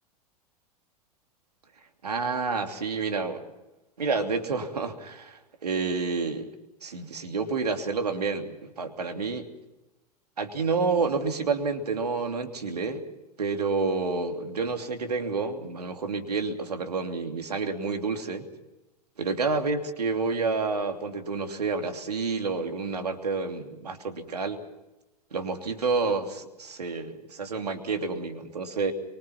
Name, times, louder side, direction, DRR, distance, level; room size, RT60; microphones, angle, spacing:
voice 1, 2.0-3.4 4.0-6.5 6.8-9.5 10.4-13.0 13.4-18.5 19.2-24.6 25.3-28.9, right 4 dB, 85° right, 5 dB, 3.0 m, -29 dB
25.0 x 24.0 x 5.8 m, 0.97 s
figure-of-eight pair, 85°, 20 cm